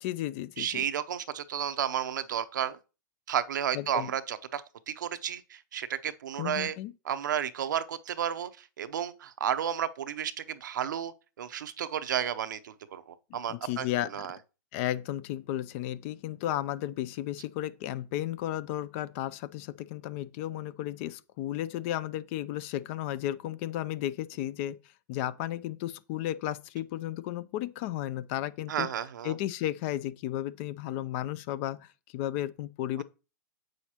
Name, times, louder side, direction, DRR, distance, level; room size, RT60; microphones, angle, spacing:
voice 1, 0.0-0.8 3.7-4.1 6.4-6.9 13.3-14.3 14.7-24.8 25.1-28.9 29.2-33.0, left 13 dB, 40° left, 0.5 m, -34 dB
voice 2, 0.6-2.8 3.3-6.8 7.1-13.0 13.3-13.9 14.1-14.3 28.7-29.3, right 9 dB, 75° right, 0.7 m, -32 dB
8.0 x 6.3 x 2.9 m
hypercardioid pair, 140°, 10 cm